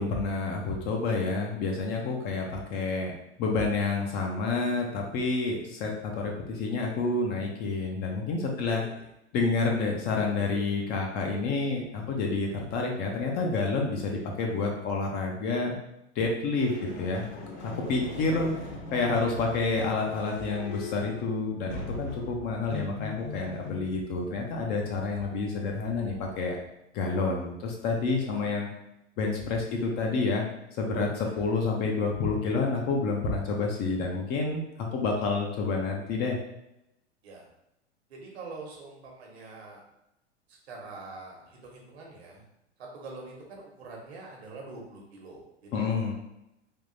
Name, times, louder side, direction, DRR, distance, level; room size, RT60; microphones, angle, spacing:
voice 1, 0.0-3.1 3.4-8.8 9.3-15.8 16.2-17.2 17.6-18.5 18.9-26.6 26.9-28.7 29.2-30.4 30.8-36.4 45.7-46.1, left 3 dB, 30° left, 0 dB, 0.5 m, -29 dB
voice 2, 8.5-9.0 17.8-18.6 28.1-28.4 31.2-31.5 37.2-37.5 38.1-39.8 40.5-42.5 42.8-46.1, right 3 dB, 65° right, -1 dB, 1.2 m, -45 dB
sound 1, 16.6-26.7, left 3 dB, 55° left, 1.0 m, -41 dB
3.5 x 2.6 x 2.6 m, 0.86 s
hypercardioid pair, 100°, 35 cm